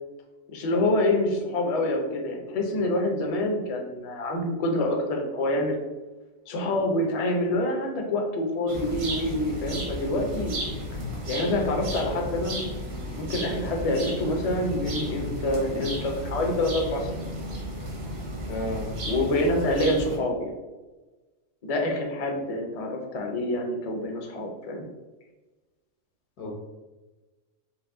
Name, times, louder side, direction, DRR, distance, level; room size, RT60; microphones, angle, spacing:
voice 1, 0.5-5.8 6.5-10.6 11.3-12.7 13.0-17.3 19.1-20.6 21.6-24.9, left 1 dB, 40° left, 1 dB, 0.5 m, -27 dB
sound 1, 8.7-20.2, equal, 80° right, 1.7 m, -33 dB
voice 2, 18.5-18.9 26.4-26.5, left 1 dB, 80° left, 0 dB, 1.6 m, -32 dB
5.1 x 2.6 x 3.7 m, 1.2 s
omnidirectional pair, 1.6 m